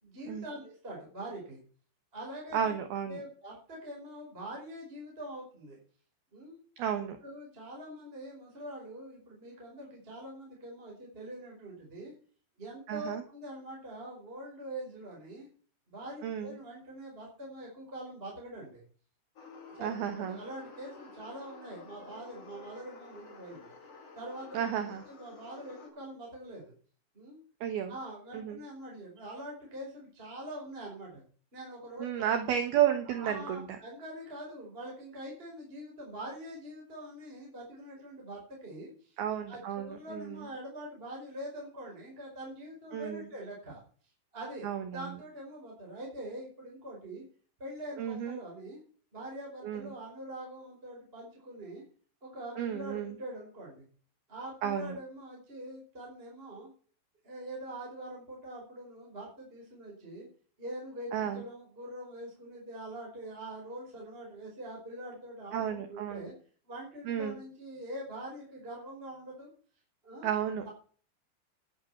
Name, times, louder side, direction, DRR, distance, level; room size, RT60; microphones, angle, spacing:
voice 1, 0.0-1.6 2.1-2.8 3.1-5.8 6.3-6.6 7.2-12.1 12.6-15.5 15.9-18.8 19.7-19.9 20.2-23.7 24.1-24.5 25.1-26.7 27.1-27.4 27.9-31.2 31.5-32.2 33.0-39.2 39.5-43.8 44.3-44.6 44.9-47.2 47.6-48.8 49.1-51.8 52.2-53.8 54.3-56.7 57.2-60.3 60.6-66.3 66.7-69.5 70.0-70.3 70.6-70.7, right 1 dB, 10° right, -2 dB, 4.7 m, -44 dB
voice 2, 2.5-3.2 6.8-7.2 12.9-13.2 16.2-16.5 19.8-20.4 24.5-25.0 27.6-27.9 28.3-28.6 32.0-33.6 39.2-40.5 42.9-43.3 44.6-45.1 48.0-48.4 49.6-49.9 52.6-53.2 54.6-55.0 61.1-61.4 65.5-66.3 67.1-67.4 70.2-70.7, right 9 dB, 70° right, 7 dB, 2.5 m, -32 dB
sound 1, 19.4-25.9, left 3 dB, 40° left, 3.1 m, -51 dB
11.0 x 11.0 x 5.8 m, 0.43 s
omnidirectional pair, 5.7 m